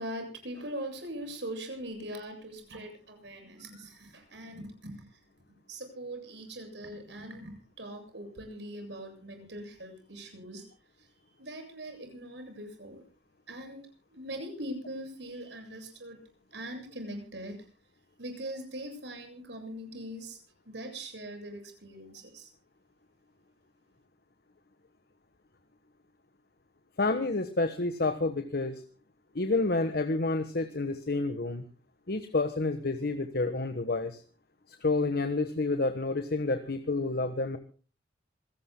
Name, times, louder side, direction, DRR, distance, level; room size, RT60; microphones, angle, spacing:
voice 1, 0.0-5.1 5.7-10.6 11.0-11.1 11.4-13.0 13.5-16.2 16.5-17.5 18.2-20.4 20.7-22.5, right 1 dB, 70° right, 5 dB, 7.5 m, -41 dB
voice 2, 27.0-28.8 29.3-31.6 32.1-34.2 34.7-37.6, left 3 dB, 55° left, 9 dB, 1.3 m, -29 dB
26.5 x 17.5 x 2.2 m, 0.38 s
head